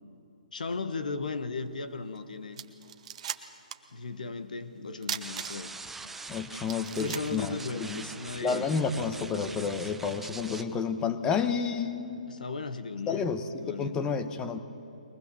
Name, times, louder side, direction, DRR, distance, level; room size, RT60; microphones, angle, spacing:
voice 1, 0.5-2.6 3.9-5.7 7.0-8.7 12.3-14.0, left 4 dB, 70° left, 12 dB, 1.4 m, -36 dB
sound 1, 2.2-2.3 2.5-3.9 4.2-4.3 5.0-5.9 6.3-6.4 6.7-8.2, right 9 dB, 50° right, 1.0 m, -38 dB
sound 2, 5.2-10.6, right 3 dB, 5° right, 0.8 m, -43 dB
voice 2, 6.3-8.0 8.4-12.2 13.1-14.6, left 5 dB, 15° left, 9 dB, 1.2 m, -30 dB
22.0 x 19.0 x 7.2 m, 2.9 s
figure-of-eight pair, 135°, 4 cm